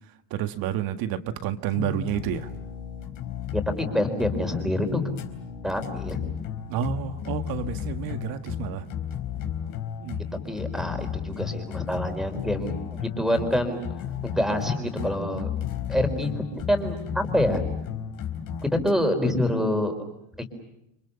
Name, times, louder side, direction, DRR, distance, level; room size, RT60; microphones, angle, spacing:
voice 1, 0.3-2.5 6.7-8.9 10.0-10.2, right 10 dB, 55° right, 9 dB, 1.8 m, -30 dB
sound 1, 1.7-18.9, left 8 dB, 50° left, 4.1 m, -34 dB
voice 2, 3.5-5.0 5.6-6.2 10.4-13.8 14.2-15.5 15.9-17.6 18.6-20.0, left 1 dB, ahead, 6 dB, 4.4 m, -26 dB
29.5 x 25.5 x 7.1 m, 0.85 s
cardioid pair, 145°, 42 cm